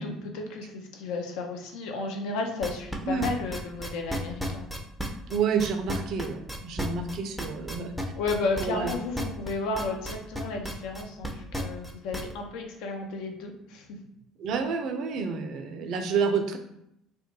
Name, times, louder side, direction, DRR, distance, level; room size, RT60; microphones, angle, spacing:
voice 1, 0.0-4.7 8.1-14.0, left 3 dB, 65° left, 3 dB, 0.4 m, -33 dB
sound 1, 2.6-12.3, equal, 5° left, 0.5 m, -33 dB
voice 2, 5.3-8.1 8.6-8.9 14.4-16.6, right 5 dB, 55° right, 6 dB, 0.3 m, -29 dB
2.2 x 2.1 x 3.0 m, 0.77 s
hypercardioid pair, 60°, 0 cm